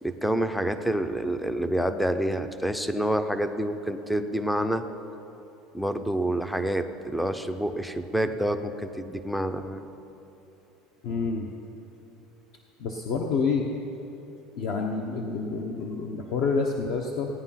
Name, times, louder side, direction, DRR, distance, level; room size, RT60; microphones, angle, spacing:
voice 1, 0.0-4.8 5.7-9.9, right 1 dB, ahead, 9 dB, 0.5 m, -28 dB
voice 2, 11.0-11.5 12.8-13.6 14.6-17.3, left 4 dB, 50° left, 1 dB, 0.9 m, -28 dB
16.5 x 9.8 x 5.7 m, 2.9 s
cardioid pair, 175°, 0 cm